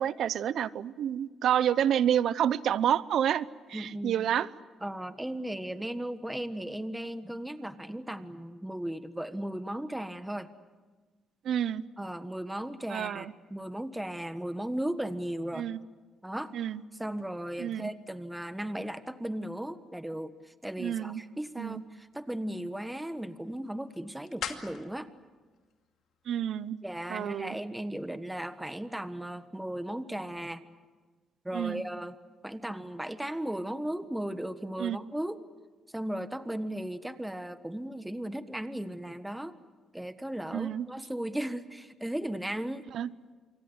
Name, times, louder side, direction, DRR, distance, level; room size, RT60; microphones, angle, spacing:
voice 1, 0.0-4.5 11.4-11.8 12.9-13.3 15.5-15.8 16.5-16.8 17.6-17.9 20.8-21.2 21.6-21.8 26.3-26.8 27.1-27.6 31.5-31.8 34.8-35.0 40.5-40.9 42.9-43.1, right 10 dB, 70° right, 18 dB, 0.8 m, -29 dB
voice 2, 3.7-4.3 4.8-10.5 12.0-15.7 16.2-16.5 17.0-25.1 26.8-30.6 31.4-32.1 32.4-35.4 35.9-39.6 39.9-42.8, right 1 dB, 5° right, 11 dB, 1.4 m, -36 dB
sound 1, 21.5-26.6, left 8 dB, 75° left, 2.4 m, -46 dB
27.5 x 24.5 x 8.1 m, 1.3 s
cardioid pair, 90°, 0 cm